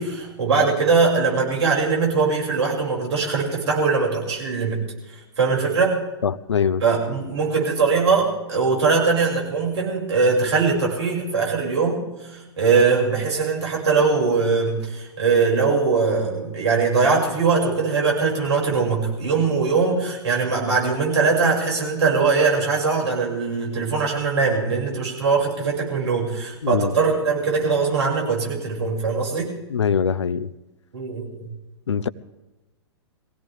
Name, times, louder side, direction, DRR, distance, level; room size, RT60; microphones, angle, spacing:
voice 1, 0.0-4.8 5.4-6.0 6.8-29.6 30.9-31.5, right 4 dB, 75° right, 6.2 m, -21 dB
voice 2, 6.2-6.8 26.6-26.9 29.7-30.5 31.9-32.1, left 6 dB, 80° left, 0.6 m, -22 dB
22.5 x 16.5 x 3.5 m
hypercardioid pair, 115°, 15 cm